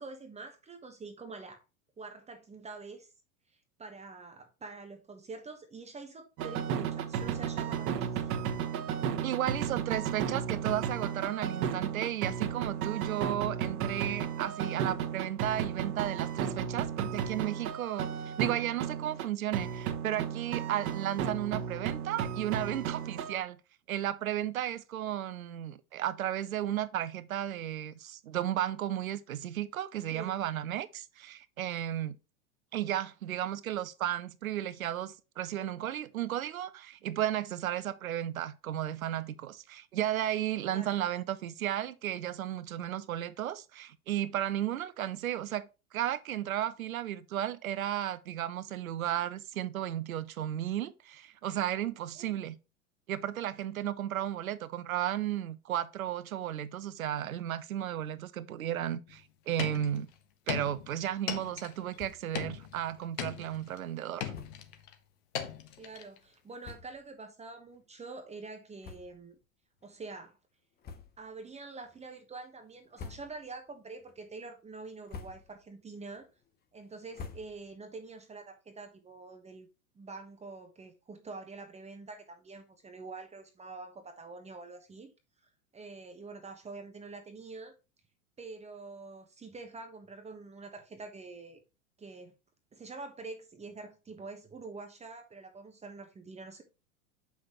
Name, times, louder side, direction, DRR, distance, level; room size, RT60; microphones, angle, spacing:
voice 1, 0.0-1.6 2.0-3.1 3.5-8.5 30.1-30.3 40.7-41.0 52.2-52.4 65.8-69.4 69.8-70.4 71.2-76.3 76.7-79.7 79.9-85.1 85.4-87.8 88.4-91.6 92.0-92.3 92.7-96.6, right 3 dB, 15° right, 1.2 m, -46 dB
sound 1, 6.4-19.3 19.5-23.4, right 8 dB, 45° right, 1.6 m, -34 dB
voice 2, 9.2-18.1 18.4-23.6 23.9-32.2 32.7-45.7 45.9-52.6 53.1-60.1 60.5-64.3, right 11 dB, 70° right, 0.9 m, -34 dB
sound 2, 59.1-59.2 59.5-60.1 60.5-62.0 62.3-63.8 64.2-64.9 65.3-66.2 66.7-66.8, left 9 dB, 50° left, 1.4 m, -39 dB
sound 3, 61.9-62.4 62.8-62.9 63.1-63.3 64.3-64.7 65.5-65.6 66.3-66.4 66.6-67.1 67.7-67.8 68.8-69.4 69.8-70.0 70.8-71.4 71.8-72.3 72.7-73.6 74.0-74.4 74.9-75.7 76.1-77.9, left 5 dB, 20° left, 1.0 m, -49 dB
7.7 x 5.9 x 3.0 m
figure-of-eight pair, 95°, 43 cm